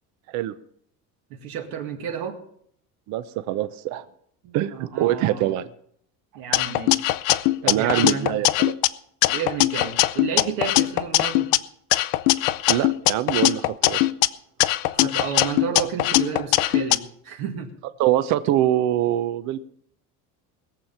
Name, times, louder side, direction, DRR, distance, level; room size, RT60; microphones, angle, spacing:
voice 1, 1.3-2.4 4.4-5.6 6.3-7.0 7.6-8.3 9.3-11.5 14.9-17.7, right 7 dB, 70° right, 1 dB, 2.1 m, -31 dB
voice 2, 3.1-4.1 4.5-5.7 7.6-8.7 12.7-14.1 18.0-19.6, right 13 dB, 50° right, 12 dB, 0.7 m, -24 dB
sound 1, 6.5-8.9 9.2-11.6 11.9-14.3 14.6-17.0, left 17 dB, 65° left, 0.6 m, -21 dB
20.5 x 7.4 x 5.6 m, 0.67 s
cardioid pair, 175°, 36 cm